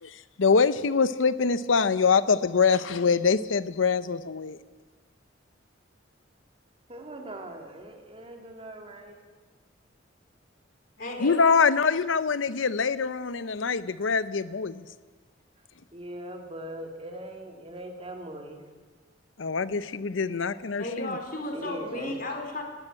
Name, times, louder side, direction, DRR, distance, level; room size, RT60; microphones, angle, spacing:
voice 1, 0.0-4.6 11.2-14.8 19.4-21.1, left 5 dB, 85° left, 14 dB, 0.7 m, -24 dB
voice 2, 6.9-9.2 15.9-18.6 21.5-22.2, right 1 dB, 30° right, 2 dB, 3.1 m, -40 dB
voice 3, 11.0-12.0 20.2-20.5 20.8-22.6, left 2 dB, 45° left, 3 dB, 4.4 m, -35 dB
19.5 x 17.0 x 8.9 m, 1.4 s
head